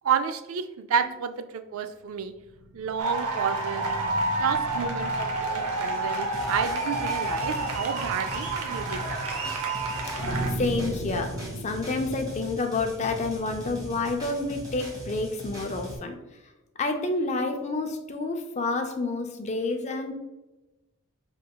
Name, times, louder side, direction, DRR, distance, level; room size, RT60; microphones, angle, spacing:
voice 1, 0.0-2.3 2.7-3.8 4.4-9.3, right 7 dB, 70° right, 9 dB, 0.3 m, -30 dB
sound 1, 2.1-14.7, right 1 dB, 45° right, 0.7 m, -39 dB
sound 2, 3.0-10.5, right 2 dB, 90° right, 0.7 m, -29 dB
sound 3, 6.3-16.0, equal, 15° right, 1.2 m, -40 dB
voice 2, 10.5-16.2 16.8-20.1, left 3 dB, 30° left, 5 dB, 0.4 m, -29 dB
5.2 x 3.7 x 2.2 m, 1.0 s
head